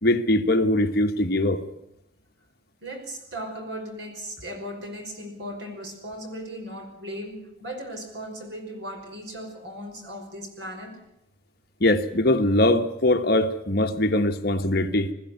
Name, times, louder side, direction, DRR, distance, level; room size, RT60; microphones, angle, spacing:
voice 1, 0.0-1.6 11.8-15.1, left 1 dB, 55° left, 1.5 m, -22 dB
voice 2, 2.8-11.0, equal, 70° right, 5.6 m, -37 dB
21.0 x 14.5 x 9.5 m
head